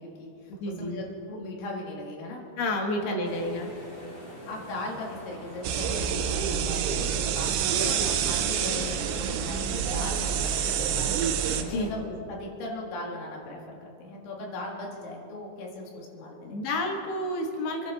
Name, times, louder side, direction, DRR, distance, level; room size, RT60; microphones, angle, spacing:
voice 1, 0.0-2.4 3.0-3.5 4.5-16.6, left 2 dB, 85° left, -1 dB, 4.4 m, -39 dB
voice 2, 0.6-1.0 2.6-3.7 11.6-11.9 16.4-17.9, left 1 dB, 60° left, 2 dB, 2.7 m, -30 dB
sound 1, 3.2-11.9, equal, 30° left, 2.0 m, -45 dB
sound 2, 5.6-11.6, right 8 dB, 85° right, 3.0 m, -27 dB
26.0 x 11.0 x 4.1 m, 2.7 s
omnidirectional pair, 5.2 m